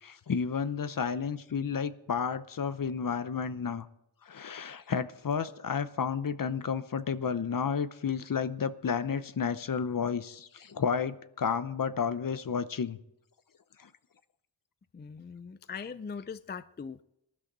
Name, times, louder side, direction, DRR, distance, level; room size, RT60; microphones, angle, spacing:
voice 1, 0.0-3.9 4.2-13.0 13.8-13.9, left 6 dB, 50° left, 14 dB, 0.8 m, -31 dB
voice 2, 14.9-17.0, left 5 dB, 25° left, 14 dB, 0.4 m, -41 dB
19.0 x 12.0 x 4.0 m, 0.81 s
wide cardioid pair, 95°, 44 cm